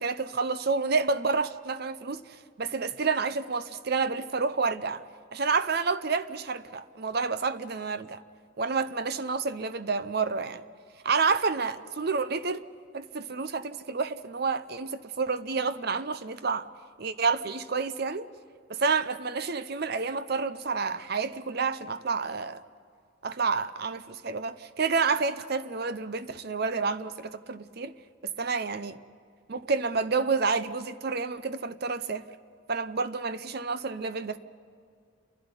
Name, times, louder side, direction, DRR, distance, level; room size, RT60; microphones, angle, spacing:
voice 1, 0.0-2.2 2.6-5.0 5.3-8.2 8.6-10.6 11.0-12.6 12.9-16.7 17.0-18.3 18.7-22.6 23.2-27.9 28.2-29.0 29.5-32.2 32.7-34.4, right 4 dB, 50° right, 0.7 m, -29 dB
29.5 x 12.0 x 9.8 m
head